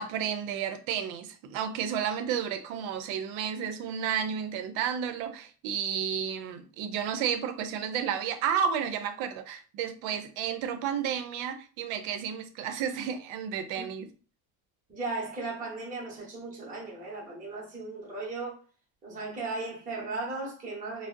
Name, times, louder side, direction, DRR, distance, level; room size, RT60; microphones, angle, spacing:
voice 1, 0.0-14.1, right 8 dB, 75° right, 0.6 m, -32 dB
voice 2, 14.9-18.6 19.0-21.1, right 3 dB, 15° right, 0.7 m, -36 dB
2.5 x 2.0 x 3.7 m
cardioid pair, 175°, 47 cm